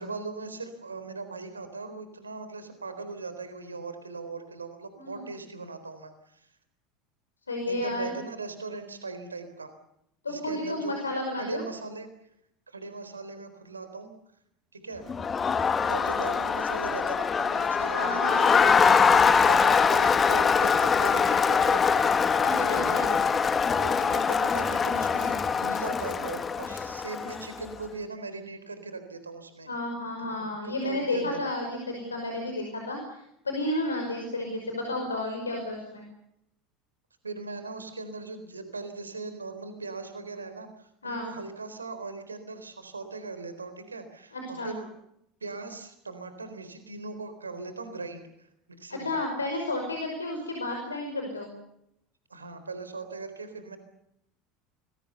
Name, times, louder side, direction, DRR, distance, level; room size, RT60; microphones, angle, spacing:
voice 1, 0.0-6.5 7.6-9.8 10.3-10.9 11.4-12.1 12.7-14.1 14.7-15.0 15.8-23.2 23.5-29.7 30.6-31.4 37.2-44.9 45.4-48.3 48.8-49.1 52.3-53.8, right 3 dB, 85° right, 10 dB, 4.0 m, -39 dB
voice 2, 7.5-8.1 10.2-11.6 17.9-18.8 22.4-23.1 29.7-36.1 41.0-41.3 44.3-44.7 48.9-51.5, left 1 dB, 85° left, 3 dB, 5.4 m, -32 dB
Crowd, 15.1-27.6, left 6 dB, 25° left, 2.1 m, -23 dB
29.5 x 21.5 x 6.9 m, 0.79 s
figure-of-eight pair, 70°, 0 cm